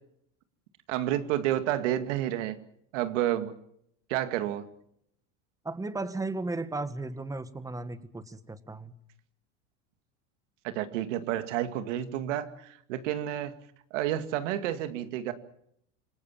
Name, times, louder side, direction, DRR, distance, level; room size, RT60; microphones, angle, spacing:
voice 1, 0.9-2.6 2.9-3.5 4.1-4.6 10.6-13.5 13.9-15.3, right 12 dB, 80° right, 10 dB, 2.3 m, -30 dB
voice 2, 5.6-8.9, right 2 dB, 10° right, 12 dB, 1.7 m, -35 dB
27.0 x 19.0 x 7.4 m, 0.72 s
supercardioid pair, 120°, 36 cm